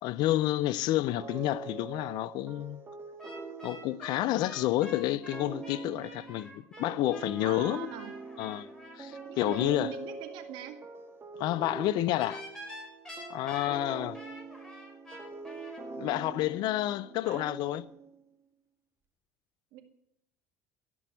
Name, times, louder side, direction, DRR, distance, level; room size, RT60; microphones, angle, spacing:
voice 1, 0.0-2.8 3.6-7.9 8.4-8.7 8.9-9.9 11.4-12.4 13.3-14.2 16.0-17.8, left 15 dB, 65° left, 0.6 m, -29 dB
sound 1, 1.1-18.3, right 4 dB, 30° right, 1.8 m, -44 dB
sound 2, 3.2-9.7 12.1-15.8, left 1 dB, 10° left, 5.3 m, -47 dB
voice 2, 7.4-8.1 9.3-10.8 13.7-14.1 17.2-17.4 19.7-19.8, right 11 dB, 70° right, 2.0 m, -42 dB
16.5 x 6.3 x 9.2 m
hypercardioid pair, 75°, 8 cm